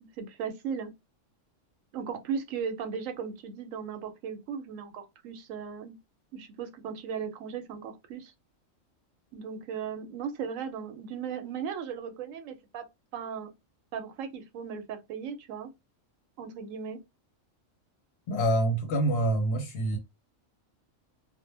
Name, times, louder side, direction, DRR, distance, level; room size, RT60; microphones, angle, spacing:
voice 1, 0.2-0.9 1.9-6.0 6.3-8.3 9.3-12.9 13.1-13.5 13.9-15.7 16.4-17.0, right 6 dB, 85° right, 1.0 m, -37 dB
voice 2, 18.3-20.0, right 1 dB, 60° left, 0.8 m, -26 dB
2.1 x 2.1 x 3.1 m
omnidirectional pair, 1.3 m